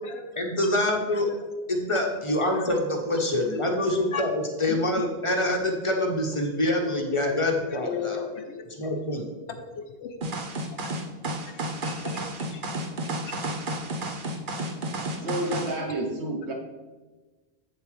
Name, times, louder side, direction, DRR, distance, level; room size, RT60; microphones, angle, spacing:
voice 1, 0.4-1.3 1.7-8.3 8.8-9.2, left 1 dB, 30° left, 1 dB, 1.0 m, -26 dB
voice 2, 7.7-8.7 9.5-10.2 11.5-12.7 13.3-13.4, left 7 dB, 85° left, 6 dB, 1.1 m, -36 dB
sound 1, 10.2-15.8, right 1 dB, 50° right, 1.0 m, -31 dB
voice 3, 15.2-16.5, right 1 dB, 90° right, 1 dB, 1.5 m, -30 dB
8.1 x 7.2 x 3.3 m, 1.3 s
omnidirectional pair, 1.1 m